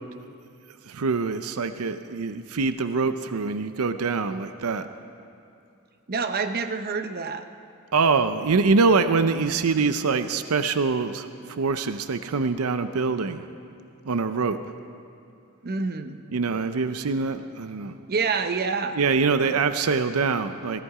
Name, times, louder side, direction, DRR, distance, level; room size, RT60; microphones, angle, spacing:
voice 1, 0.9-4.9 7.9-13.5 14.1-14.6 16.3-18.0 19.0-20.8, right 4 dB, 85° right, 10 dB, 0.6 m, -24 dB
voice 2, 6.1-7.4 15.6-16.2 18.1-19.0 19.5-19.7, right 4 dB, 45° right, 8 dB, 0.8 m, -27 dB
19.0 x 14.5 x 4.9 m, 2.6 s
head